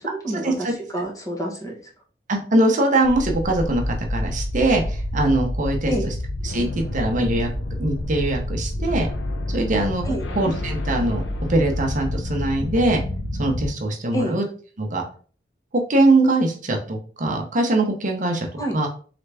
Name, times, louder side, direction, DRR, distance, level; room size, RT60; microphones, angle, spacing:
voice 1, 0.0-1.8 5.9-6.1 10.0-10.2 14.1-14.4 18.6-18.8, right 1 dB, 20° left, 0 dB, 1.0 m, -28 dB
voice 2, 2.3-6.1 6.4-7.5 7.8-9.1 9.5-10.0 10.3-11.2 11.5-13.0 13.4-14.4 14.8-15.0 15.9-18.5 18.7-18.9, right 2 dB, 45° right, 2 dB, 0.8 m, -22 dB
sound 1, 3.0-13.7, left 1 dB, 75° left, 0.7 m, -28 dB
3.8 x 3.3 x 3.3 m, 0.40 s
head